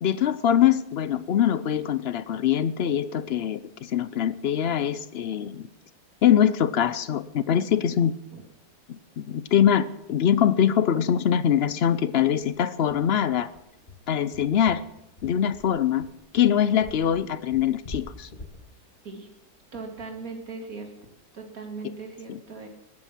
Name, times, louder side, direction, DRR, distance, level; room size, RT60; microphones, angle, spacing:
voice 1, 0.0-5.7 6.2-8.1 8.9-13.5 14.1-14.8 15.2-16.0 16.3-18.3 22.3-22.4, left 9 dB, 65° left, 14 dB, 0.6 m, -23 dB
sound 1, 10.0-10.1 10.4-10.5 10.8-11.0 11.3-11.4 11.9-20.3, left 2 dB, 35° left, 1.9 m, -45 dB
voice 2, 19.7-20.9 21.3-22.7, right 4 dB, 60° right, 2 dB, 2.8 m, -38 dB
20.5 x 9.1 x 5.9 m, 0.85 s
omnidirectional pair, 1.7 m